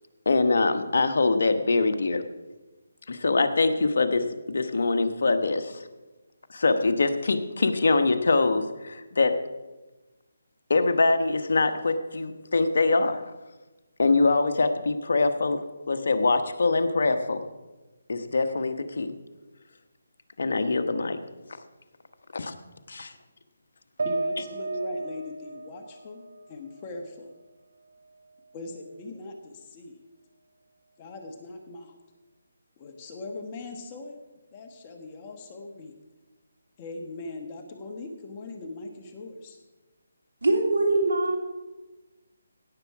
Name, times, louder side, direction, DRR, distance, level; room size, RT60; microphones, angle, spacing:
voice 1, 0.3-2.2 3.1-5.8 6.5-9.4 10.7-13.2 14.0-17.5 18.1-19.1 20.4-21.2 22.3-22.5 22.9-23.1, left 3 dB, 65° left, 8 dB, 1.1 m, -24 dB
voice 2, 24.0-27.3 28.5-30.0 31.0-31.9 32.8-34.2 34.5-35.9 36.8-39.6, left 2 dB, 25° left, 4 dB, 1.3 m, -40 dB
sound 1, 24.0-27.4 27.8-28.8, right 3 dB, 60° right, 1.0 m, -35 dB
voice 3, 40.4-41.4, right 2 dB, 80° right, 2 dB, 2.8 m, -22 dB
17.0 x 7.1 x 4.8 m, 1.2 s
figure-of-eight pair, 160°, 0 cm